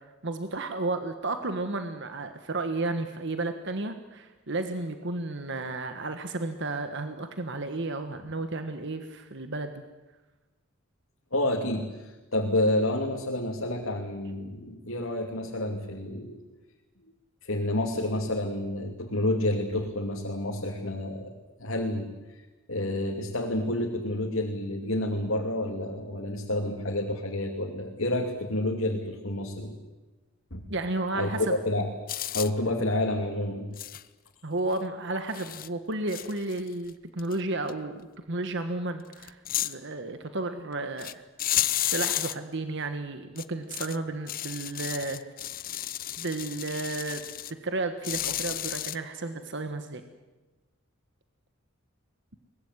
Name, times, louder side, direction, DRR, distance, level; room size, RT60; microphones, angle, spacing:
voice 1, 0.2-9.8 30.7-31.5 34.4-41.2 41.5-45.2 46.2-47.2 47.6-50.0, right 2 dB, 60° right, 8 dB, 1.5 m, -32 dB
voice 2, 11.3-16.4 17.4-21.3 21.6-22.1 22.7-29.8 30.5-30.7 31.1-31.9 32.3-33.7, left 1 dB, 70° left, 0 dB, 2.8 m, -29 dB
sound 1, 32.1-32.5 33.8-34.0 34.7-34.8 35.3-35.7 36.1-36.9 37.2-37.3 37.7-37.8 39.1-39.7 41.0-41.1 41.4-42.3 43.4-44.0 44.3-47.5 48.0-49.0, left 13 dB, 45° left, 0.8 m, -32 dB
23.5 x 20.0 x 9.7 m, 1.2 s
head